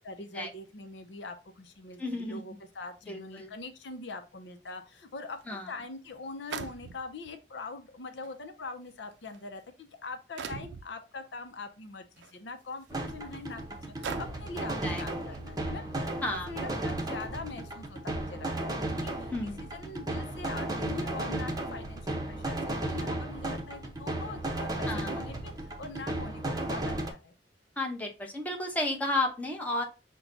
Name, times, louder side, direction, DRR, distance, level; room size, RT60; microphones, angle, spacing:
voice 1, 0.0-13.6 14.0-15.8 16.3-27.3, left 3 dB, 75° left, 7 dB, 0.6 m, -43 dB
voice 2, 2.0-2.4 3.1-3.5 5.5-5.7 14.8-15.0 16.2-16.5 19.3-19.6 24.9-25.3 27.8-29.8, left 2 dB, 10° left, 1 dB, 0.9 m, -32 dB
sound 1, 5.4-5.5 6.5-7.3 8.2-8.3 9.1-9.4 10.4-10.9 12.2-12.3 12.9-13.0 14.0-14.6, right 6 dB, 85° right, 0.5 m, -39 dB
sound 2, 12.9-27.1, right 1 dB, 20° right, 0.8 m, -34 dB
5.9 x 2.2 x 3.9 m, 0.29 s
head